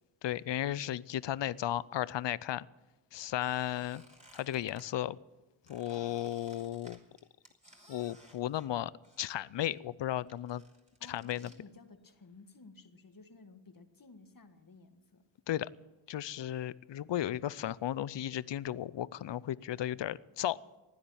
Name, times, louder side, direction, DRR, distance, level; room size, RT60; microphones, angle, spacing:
voice 1, 0.2-2.7 3.1-4.0 4.3-5.2 5.7-7.0 7.9-8.9 9.2-10.6 11.1-11.5 15.5-15.7 16.1-20.6, left 12 dB, 60° left, 20 dB, 0.6 m, -35 dB
Squeak, 3.4-4.9 5.7-9.4 9.6-11.6, right 1 dB, 15° right, 3.1 m, -59 dB
voice 2, 11.0-15.2, left 3 dB, 40° left, 7 dB, 1.8 m, -55 dB
16.0 x 10.0 x 8.7 m, 1.1 s
cardioid pair, 60°, 50 cm